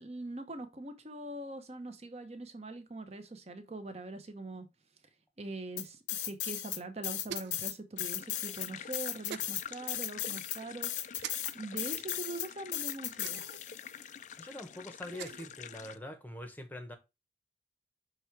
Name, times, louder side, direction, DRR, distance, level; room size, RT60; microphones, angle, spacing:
voice 1, 0.0-4.7 5.4-10.9 11.5-13.4, right 2 dB, 35° right, 0.8 m, -42 dB
sound 1, 5.8-6.8 7.0-13.9, left 12 dB, 80° left, 0.7 m, -36 dB
sound 2, 7.2-7.7 9.3-9.5 11.2-11.3 13.2-13.6 15.0-15.5, right 8 dB, 70° right, 0.4 m, -43 dB
sound 3, 8.0-16.0, left 8 dB, 40° left, 0.3 m, -47 dB
voice 2, 14.4-17.0, left 1 dB, 10° left, 0.9 m, -44 dB
6.1 x 3.4 x 4.5 m
head